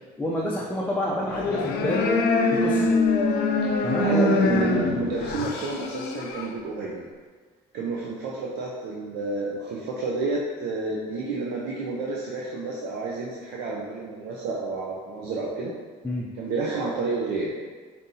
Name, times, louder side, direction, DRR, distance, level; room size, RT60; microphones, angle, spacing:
voice 1, 0.2-2.1 2.5-2.9 3.8-4.1 16.0-16.3, left 1 dB, 10° left, -4 dB, 0.4 m, -28 dB
sound 1, 1.3-6.5, left 3 dB, 70° left, 0.5 m, -24 dB
voice 2, 4.0-7.1 7.7-15.7 16.3-17.5, right 3 dB, 80° right, -4 dB, 0.6 m, -30 dB
5.1 x 2.7 x 2.7 m, 1.5 s
cardioid pair, 110°, 17 cm